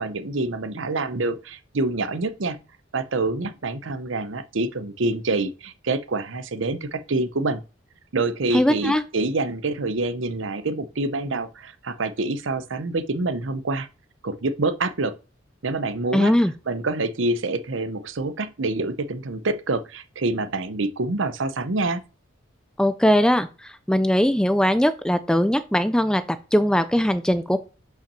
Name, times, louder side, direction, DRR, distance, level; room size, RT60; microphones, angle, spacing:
voice 1, 0.0-2.6 2.9-7.6 8.1-13.9 14.2-15.1 15.6-16.3 16.7-22.0, right 2 dB, 80° right, 0.8 m, -26 dB
voice 2, 8.5-9.0 16.1-16.5 22.8-23.5 23.9-26.2 26.5-27.6, equal, 5° left, 0.4 m, -20 dB
5.8 x 5.7 x 6.7 m
head